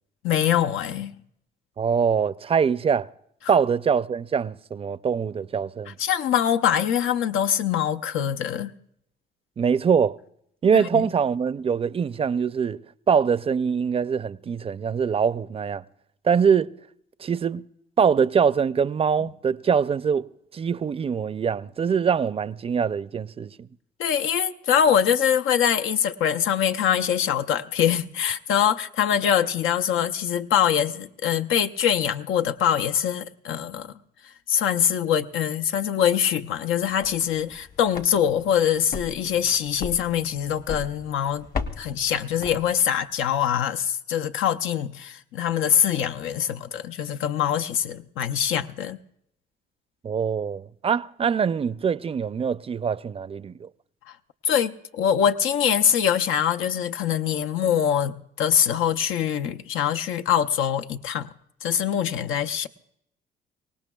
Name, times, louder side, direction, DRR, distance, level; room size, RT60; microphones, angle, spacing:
voice 1, 0.2-1.1 5.9-8.7 10.7-11.1 24.0-33.9 34.5-41.5 41.8-49.0 54.4-61.3 61.6-62.7, left 9 dB, 85° left, 0.6 m, -23 dB
voice 2, 1.8-3.1 3.5-5.9 9.6-10.2 10.6-15.8 16.2-16.7 17.2-17.6 18.0-20.3 20.5-23.5 50.0-53.7, right 6 dB, 30° right, 0.4 m, -23 dB
sound 1, 36.8-43.1, left 4 dB, 50° left, 1.1 m, -37 dB
24.5 x 18.5 x 2.3 m
cardioid pair, 90°, 20 cm